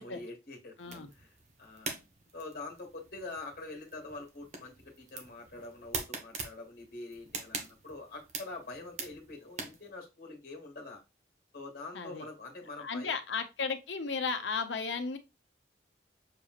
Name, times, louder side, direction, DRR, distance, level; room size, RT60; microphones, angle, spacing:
voice 1, 0.0-1.3 1.6-2.0 2.3-11.0 11.5-13.1, left 2 dB, 50° left, 1.5 m, -45 dB
voice 2, 0.8-1.1 11.9-12.3 12.8-15.2, left 5 dB, 85° left, 0.8 m, -34 dB
sound 1, 0.8-9.9, right 4 dB, 40° right, 0.9 m, -44 dB
6.8 x 3.0 x 2.4 m
head